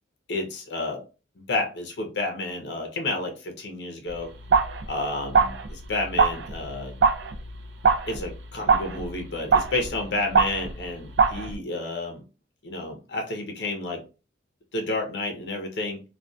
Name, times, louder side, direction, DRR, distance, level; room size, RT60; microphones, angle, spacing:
voice 1, 0.3-1.0 1.4-4.3 4.9-6.9 8.1-12.2 12.6-14.0 14.7-16.0, left 2 dB, 65° left, 2 dB, 0.6 m, -30 dB
sound 1, 4.1-11.6, right 5 dB, 70° right, 0.4 m, -24 dB
2.5 x 2.2 x 2.2 m, 0.32 s
head